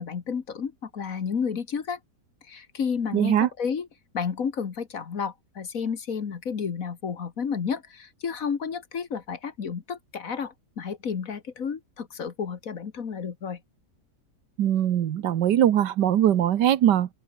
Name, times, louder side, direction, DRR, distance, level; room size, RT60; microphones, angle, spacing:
voice 1, 0.0-2.0 2.5-3.9 4.1-13.6, left 6 dB, 55° left, 1.8 m, -31 dB
voice 2, 3.1-3.5 14.6-17.1, right 11 dB, 85° right, 1.6 m, -21 dB
open air
omnidirectional pair, 1.8 m